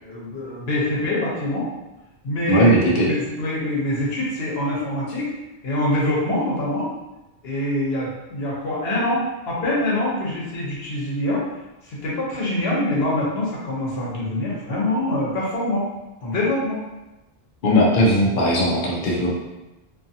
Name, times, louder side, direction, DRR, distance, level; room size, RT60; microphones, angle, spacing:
voice 1, 0.0-1.7 2.2-5.3 5.6-6.9 7.4-11.4 11.8-15.9 16.2-16.8, left 1 dB, 75° left, -5 dB, 1.1 m, -24 dB
voice 2, 2.5-3.1 17.6-19.3, equal, 60° left, -4 dB, 0.7 m, -18 dB
2.6 x 2.5 x 2.6 m, 1.0 s
omnidirectional pair, 1.0 m